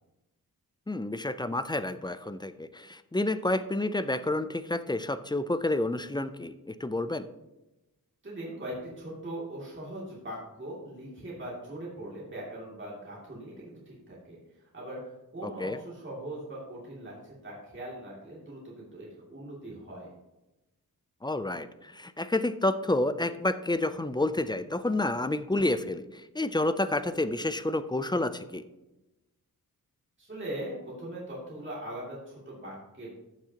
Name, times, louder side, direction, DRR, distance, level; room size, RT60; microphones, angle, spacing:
voice 1, 0.9-7.3 15.4-15.8 21.2-28.6, left 2 dB, 15° left, 12 dB, 0.3 m, -29 dB
voice 2, 8.2-14.4 14.7-15.0 15.3-20.1 30.2-33.1, right 1 dB, 30° right, -6 dB, 2.6 m, -40 dB
14.5 x 6.1 x 2.9 m, 0.99 s
wide cardioid pair, 135°, 36 cm